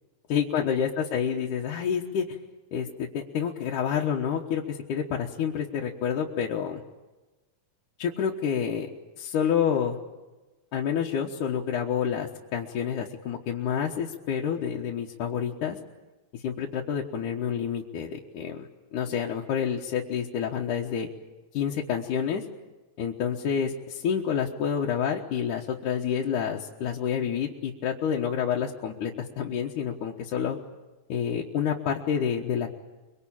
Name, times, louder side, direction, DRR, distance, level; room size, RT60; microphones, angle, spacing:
voice 1, 0.3-2.4 2.7-6.8 8.0-8.9 9.2-10.0 10.7-15.8 16.3-21.1 21.5-22.4 23.0-30.6 31.1-32.7, left 8 dB, 70° left, -1 dB, 2.7 m, -28 dB
24.5 x 23.5 x 8.8 m, 1.2 s
omnidirectional pair, 4.0 m